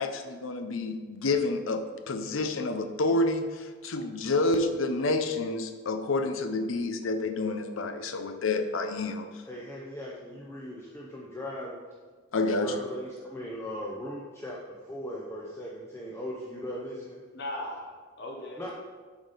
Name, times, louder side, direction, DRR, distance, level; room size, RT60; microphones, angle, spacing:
voice 1, 0.0-9.4 12.3-12.7, left 2 dB, 75° left, 7 dB, 0.6 m, -29 dB
voice 2, 9.5-11.8 12.6-17.2 18.6-18.7, equal, 15° left, -4 dB, 0.7 m, -38 dB
voice 3, 17.3-18.7, left 1 dB, 60° left, -1 dB, 1.0 m, -38 dB
7.7 x 5.0 x 4.1 m, 1.5 s
head